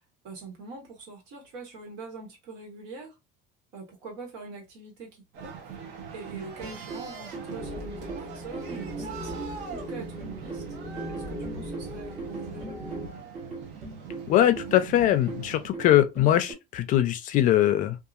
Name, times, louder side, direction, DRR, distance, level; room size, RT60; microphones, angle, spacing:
voice 1, 0.2-3.2 3.7-5.6 6.1-10.7 11.1-12.9, right 4 dB, 75° right, 1.4 m, -43 dB
sound 1, 5.3-15.7, right 6 dB, 60° right, 0.8 m, -42 dB
sound 2, 6.6-16.5, right 4 dB, 40° right, 1.5 m, -40 dB
sound 3, 7.6-13.1, equal, 15° right, 0.7 m, -39 dB
voice 2, 14.3-18.0, left 12 dB, 40° left, 0.4 m, -22 dB
2.8 x 2.3 x 2.4 m
cardioid pair, 165°, 20 cm